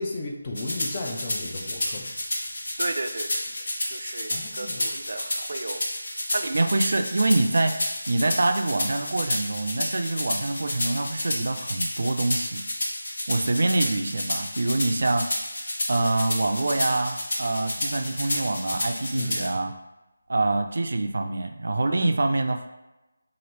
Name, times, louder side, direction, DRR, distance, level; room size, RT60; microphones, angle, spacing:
voice 1, 0.0-2.1 4.3-4.9 19.1-19.4, left 2 dB, 20° left, -1 dB, 0.4 m, -34 dB
sound 1, 0.5-19.5, left 1 dB, 60° left, 0.7 m, -30 dB
voice 2, 2.8-3.4 3.9-5.8 6.3-7.7 8.1-12.6 13.3-15.2 15.9-19.7 20.3-22.7, right 2 dB, 60° right, 5 dB, 0.3 m, -26 dB
2.9 x 2.5 x 3.1 m, 1.0 s
figure-of-eight pair, 175°, 0 cm